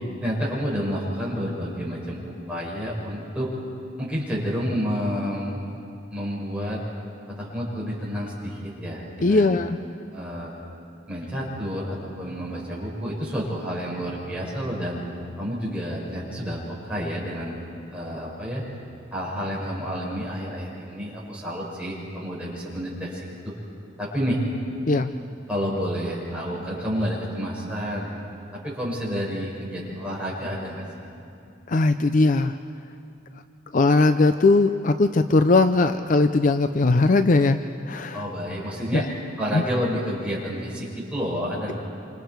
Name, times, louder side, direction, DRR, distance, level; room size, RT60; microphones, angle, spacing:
voice 1, 0.2-3.5 4.0-5.5 6.1-6.8 7.4-9.6 10.1-10.5 11.1-15.0 15.4-17.6 17.9-18.6 19.1-23.5 24.0-24.4 25.5-28.1 28.5-31.1 38.1-39.1 39.4-41.7, equal, 5° right, -6 dB, 5.9 m, -29 dB
voice 2, 9.2-9.8 24.9-25.1 31.7-32.6 33.7-37.6 37.9-38.3 38.9-39.1 39.5-39.6, left 3 dB, 45° left, 10 dB, 0.5 m, -19 dB
27.0 x 26.5 x 4.7 m, 2.5 s
head